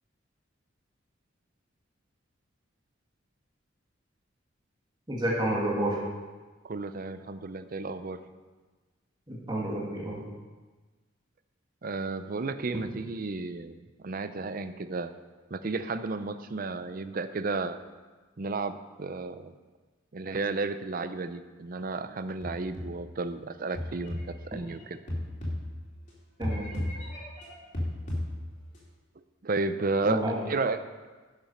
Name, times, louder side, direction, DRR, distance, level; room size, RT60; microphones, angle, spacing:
voice 1, 5.1-6.0 9.3-10.2 26.4-26.7 30.1-30.4, right 1 dB, 20° right, -4 dB, 2.2 m, -29 dB
voice 2, 6.6-8.2 11.8-13.8 14.0-15.1 15.5-17.8 18.4-19.5 20.1-24.2 24.4-25.0 29.4-30.8, right 3 dB, 45° right, 11 dB, 0.5 m, -32 dB
sound 1, 22.4-23.2 23.7-26.1 26.4-28.8, left 1 dB, 40° left, 2.8 m, -35 dB
10.5 x 7.3 x 5.6 m, 1.3 s
head